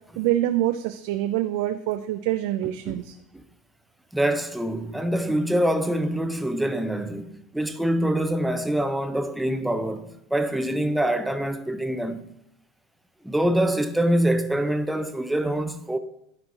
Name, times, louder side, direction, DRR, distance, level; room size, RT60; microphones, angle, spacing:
voice 1, 0.2-3.1, right 13 dB, 65° right, 0.4 m, -25 dB
voice 2, 4.1-12.2 13.2-16.0, right 1 dB, 5° right, 0.7 m, -25 dB
12.0 x 4.5 x 3.8 m
hypercardioid pair, 95°, 0 cm